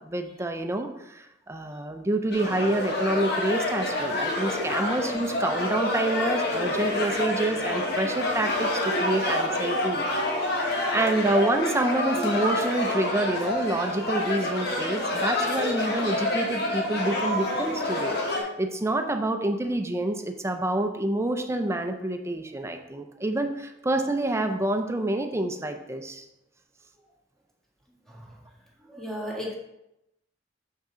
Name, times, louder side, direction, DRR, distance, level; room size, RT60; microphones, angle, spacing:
voice 1, 0.0-10.2 10.5-26.2 29.4-29.5, right 1 dB, 15° right, 6 dB, 0.5 m, -28 dB
sound 1, 2.3-18.4, left 1 dB, 60° left, 1.3 m, -27 dB
voice 2, 28.9-29.5, equal, ahead, -3 dB, 1.6 m, -34 dB
6.6 x 5.9 x 3.8 m, 0.88 s
head